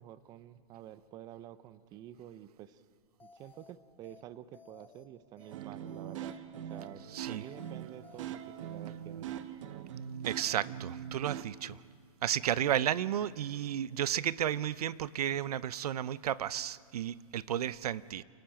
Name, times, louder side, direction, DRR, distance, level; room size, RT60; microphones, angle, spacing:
voice 1, 0.0-2.8 3.2-9.5, right 11 dB, 20° right, 16 dB, 0.5 m, -50 dB
sound 1, 3.2-3.7 4.0-4.2 4.5-5.0 5.4-5.5 5.9-6.4 6.7-6.9 7.2-7.7 8.0-8.2, left 5 dB, 10° left, 1.2 m, -58 dB
sound 2, 5.4-11.4, right 9 dB, 55° right, 1.0 m, -42 dB
voice 2, 7.1-7.4 10.2-11.8 12.2-18.2, right 10 dB, 85° right, 19 dB, 0.6 m, -33 dB
28.0 x 11.5 x 8.9 m, 2.1 s
hypercardioid pair, 150°, 19 cm